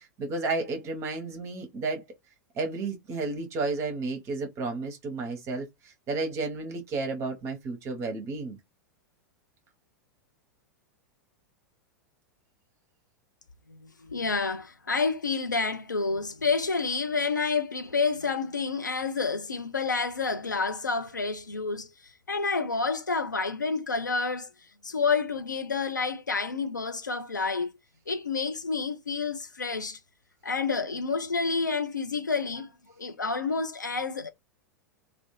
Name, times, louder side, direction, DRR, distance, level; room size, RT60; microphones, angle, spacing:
voice 1, 0.0-2.0 2.5-8.6, right 3 dB, 30° right, 0.6 m, -32 dB
voice 2, 13.7-24.5 24.8-27.7 28.1-30.0 30.4-32.7 33.0-34.3, left 4 dB, 80° left, 0.4 m, -29 dB
2.4 x 2.0 x 2.9 m
figure-of-eight pair, 90°, 10 cm